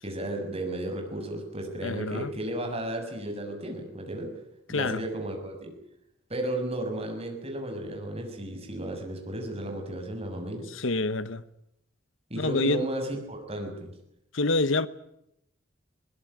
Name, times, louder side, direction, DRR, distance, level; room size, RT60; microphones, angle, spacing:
voice 1, 0.0-4.3 4.7-5.7 6.3-10.7 12.3-13.9, right 1 dB, 30° right, 6.4 m, -34 dB
voice 2, 1.8-2.3 4.7-5.0 10.7-11.4 12.4-12.8 14.3-14.9, left 2 dB, 75° left, 1.1 m, -27 dB
22.0 x 20.5 x 10.0 m
head